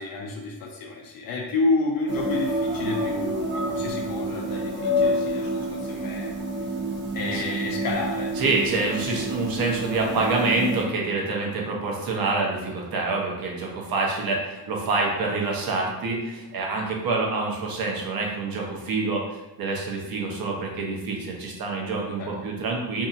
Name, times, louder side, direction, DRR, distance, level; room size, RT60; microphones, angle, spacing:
voice 1, 0.0-6.3 7.1-8.3 8.7-9.2 22.2-22.3, left 3 dB, 60° left, 1 dB, 0.5 m, -30 dB
sound 1, 2.1-10.8, equal, 30° right, 0.6 m, -28 dB
voice 2, 8.4-19.2 19.6-23.1, right 3 dB, 60° right, -1 dB, 0.8 m, -26 dB
2.7 x 2.6 x 2.4 m, 1.1 s
cardioid pair, 100°, 39 cm